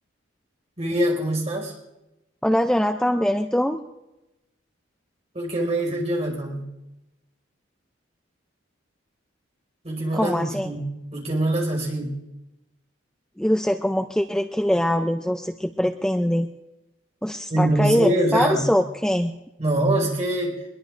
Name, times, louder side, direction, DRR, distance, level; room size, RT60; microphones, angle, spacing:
voice 1, 0.8-1.7 5.3-6.7 9.8-12.1 17.5-18.7 19.6-20.6, right 1 dB, 35° right, 0 dB, 5.2 m, -24 dB
voice 2, 2.4-3.8 10.1-10.7 13.4-16.5 17.2-19.3, equal, 5° left, 5 dB, 0.4 m, -23 dB
23.0 x 21.5 x 2.5 m, 0.95 s
head